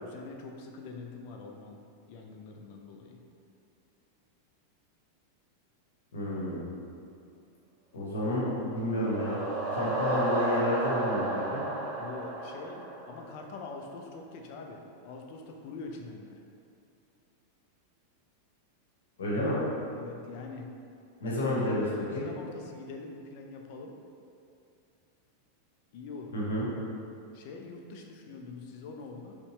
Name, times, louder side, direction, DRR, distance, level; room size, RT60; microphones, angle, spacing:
voice 1, 0.0-1.8 2.1-3.2 11.9-16.4 20.0-20.7 21.2-21.5 22.1-23.9 25.9-26.3 27.3-29.4, left 4 dB, 45° left, 2 dB, 0.4 m, -44 dB
voice 2, 6.1-6.6 7.9-9.4 9.7-11.6 19.2-19.6 21.2-21.8 22.1-22.2 26.3-26.6, left 1 dB, 65° left, -5 dB, 1.0 m, -30 dB
sound 1, 8.6-13.5, right 2 dB, 30° right, 0.6 m, -33 dB
5.4 x 2.2 x 3.0 m, 2.5 s
figure-of-eight pair, 90°, 0 cm